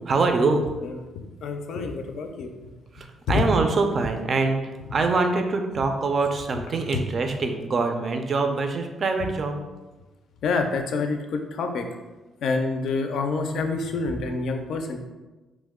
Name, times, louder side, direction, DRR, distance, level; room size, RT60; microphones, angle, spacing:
voice 1, 0.1-0.7 2.9-9.7, right 3 dB, 45° right, 5 dB, 0.4 m, -24 dB
voice 2, 1.4-2.5 3.3-3.4 6.9-7.0 10.4-11.9 12.4-15.0, left 4 dB, 70° left, 5 dB, 0.4 m, -27 dB
3.0 x 2.1 x 3.5 m, 1.2 s
cardioid pair, 90°, 0 cm